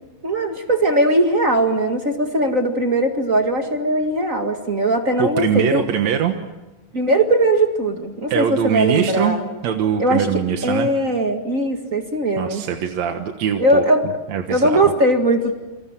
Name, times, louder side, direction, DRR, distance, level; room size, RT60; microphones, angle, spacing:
voice 1, 0.2-5.8 6.9-9.5 10.0-12.7 13.6-14.2 14.5-15.5, right 1 dB, 35° right, 4 dB, 1.4 m, -19 dB
voice 2, 5.2-6.4 8.3-9.4 9.6-10.9 12.4-13.8 14.3-14.9, right 8 dB, 60° right, 5 dB, 2.2 m, -22 dB
29.0 x 25.5 x 7.4 m, 1.1 s
omnidirectional pair, 4.3 m